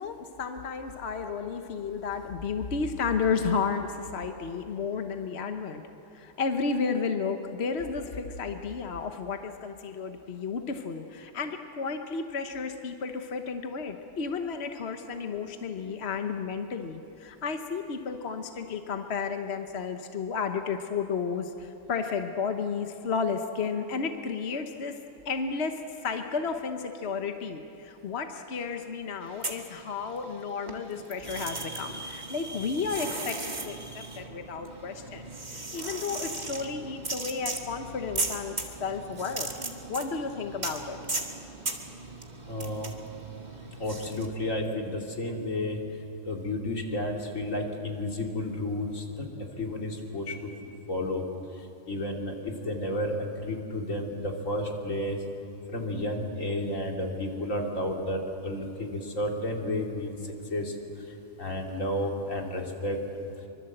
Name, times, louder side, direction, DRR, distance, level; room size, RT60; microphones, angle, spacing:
voice 1, 0.0-5.8 6.1-39.5 39.9-41.0, left 5 dB, 55° left, 6 dB, 1.3 m, -32 dB
sound 1, 29.3-30.4 30.7-44.3, right 2 dB, 35° right, 2.0 m, -37 dB
voice 2, 42.5-42.9 43.8-45.8 46.3-49.0 49.5-50.5 50.9-51.2 51.9-53.2 53.4-55.2 55.7-60.1 60.5-60.7 61.4-63.0, left 1 dB, 85° left, 1 dB, 3.1 m, -31 dB
25.0 x 24.0 x 7.8 m, 2.8 s
omnidirectional pair, 1.3 m